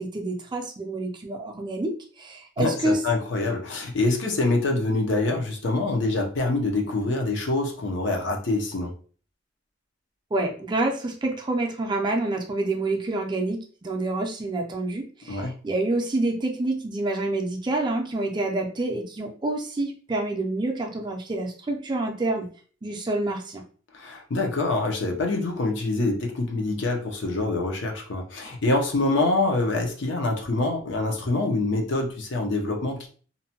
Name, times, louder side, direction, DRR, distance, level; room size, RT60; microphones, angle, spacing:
voice 1, 0.0-3.0 10.3-22.5 22.8-23.6, right 2 dB, 25° right, 2 dB, 0.4 m, -27 dB
voice 2, 2.6-8.9 15.3-15.6 23.9-33.1, left 2 dB, 70° left, 2 dB, 0.6 m, -25 dB
2.6 x 2.1 x 2.7 m, 0.41 s
head